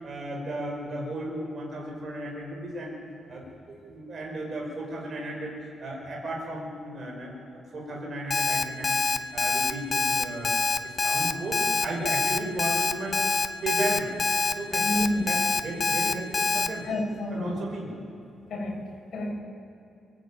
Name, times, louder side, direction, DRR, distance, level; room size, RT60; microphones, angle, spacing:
voice 1, 0.0-3.0 3.3-9.0 9.3-13.2 13.6-14.1 14.5-16.9 17.3-17.9, right 1 dB, 40° right, -1 dB, 5.3 m, -35 dB
Alarm, 8.3-16.7, left 4 dB, 30° left, 1.0 m, -25 dB
voice 2, 14.8-15.2 16.8-17.6 18.5-18.8 19.1-19.3, left 1 dB, 55° left, -2 dB, 6.6 m, -29 dB
24.0 x 13.5 x 8.9 m, 2.8 s
cardioid pair, 130°, 0 cm